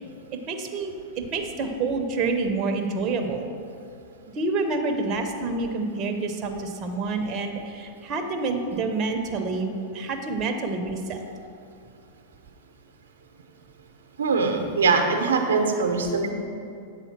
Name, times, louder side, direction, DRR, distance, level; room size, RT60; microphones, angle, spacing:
voice 1, 0.5-3.5 4.3-11.2, right 3 dB, 40° right, 4 dB, 0.8 m, -28 dB
voice 2, 14.2-16.3, right 4 dB, 85° right, 3 dB, 0.8 m, -22 dB
8.2 x 3.8 x 5.9 m, 2.6 s
hypercardioid pair, 110°, 0 cm